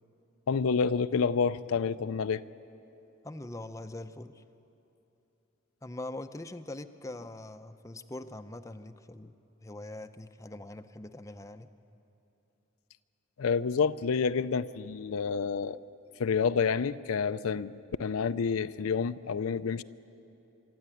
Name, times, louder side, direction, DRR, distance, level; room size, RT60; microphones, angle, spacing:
voice 1, 0.5-2.4 13.4-15.8 16.2-19.8, left 5 dB, 80° left, 13 dB, 0.5 m, -29 dB
voice 2, 3.2-4.4 5.8-9.3 9.6-11.7, left 2 dB, 15° left, 9 dB, 0.6 m, -42 dB
25.0 x 13.0 x 9.9 m, 2.9 s
head